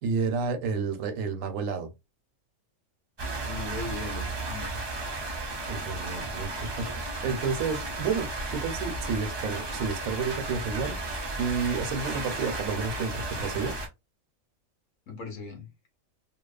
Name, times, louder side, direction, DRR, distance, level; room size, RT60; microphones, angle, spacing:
voice 1, 0.0-1.9 5.7-6.5 6.8-13.7, right 5 dB, 80° right, 1.0 m, -31 dB
sound 1, 3.2-13.9, right 2 dB, 45° right, 0.3 m, -34 dB
voice 2, 3.4-4.8 15.1-15.7, left 3 dB, 75° left, 1.2 m, -38 dB
2.8 x 2.0 x 2.3 m
omnidirectional pair, 1.3 m